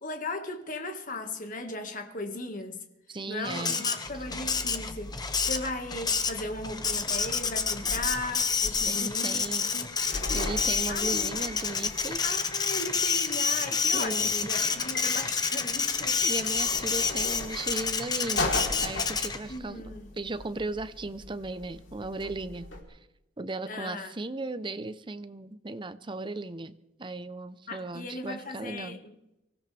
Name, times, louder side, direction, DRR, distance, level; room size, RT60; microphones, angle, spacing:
voice 1, 0.0-2.8 3.3-5.1 5.4-9.8 10.9-11.3 12.2-16.2 19.5-20.1 23.7-24.1 27.7-29.2, left 2 dB, 45° left, 1.8 m, -37 dB
voice 2, 3.1-3.9 8.9-9.7 10.3-12.2 13.7-14.4 16.2-19.8 20.2-23.0 23.4-26.7 27.0-29.0, right 2 dB, 25° right, 0.7 m, -36 dB
Printer, 3.4-19.6, left 5 dB, 20° left, 1.1 m, -29 dB
sound 1, 4.1-22.8, left 2 dB, 85° left, 3.7 m, -40 dB
Piano, 14.9-16.2, left 4 dB, 60° left, 1.4 m, -44 dB
24.5 x 16.5 x 3.4 m
head